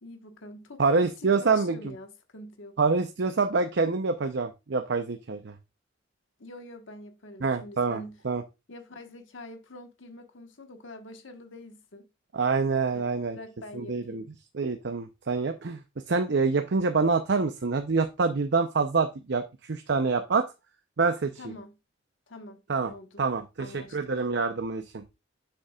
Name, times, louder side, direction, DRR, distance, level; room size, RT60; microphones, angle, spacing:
voice 1, 0.0-2.8 6.4-8.2 8.7-12.1 12.9-13.0 13.3-14.3 21.4-21.8 22.3-23.2 23.6-24.1, left 1 dB, 80° left, 1.3 m, -45 dB
voice 2, 0.8-1.8 2.8-5.5 7.4-8.4 12.3-13.4 13.7-14.2 14.5-15.8 16.1-19.4 19.7-20.5 21.0-21.3 22.7-22.9 23.2-25.0, right 4 dB, 65° right, 0.6 m, -26 dB
7.5 x 7.0 x 2.3 m
head